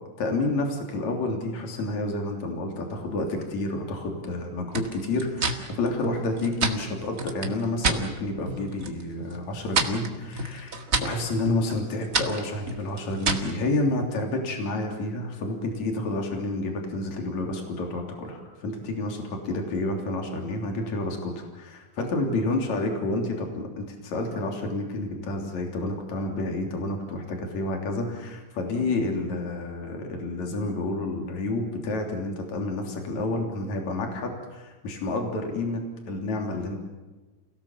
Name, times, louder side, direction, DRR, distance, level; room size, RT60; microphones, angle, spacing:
voice 1, 0.2-36.8, left 2 dB, 55° left, 2 dB, 4.5 m, -29 dB
sound 1, 4.7-8.0 8.4-9.0 9.3-13.6, right 3 dB, 35° right, 1.6 m, -29 dB
29.0 x 17.5 x 7.4 m, 1.2 s
omnidirectional pair, 3.8 m